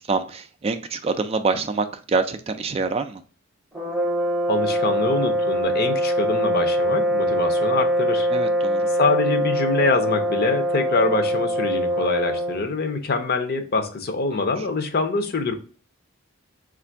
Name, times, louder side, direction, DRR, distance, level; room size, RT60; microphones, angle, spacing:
voice 1, 0.1-3.2 8.3-8.9, right 4 dB, 30° right, 9 dB, 0.3 m, -25 dB
sound 1, 3.7-12.7, equal, 5° right, 0.7 m, -23 dB
voice 2, 4.5-8.3 8.9-15.6, left 3 dB, 50° left, 7 dB, 0.6 m, -24 dB
3.2 x 2.5 x 4.4 m, 0.40 s
head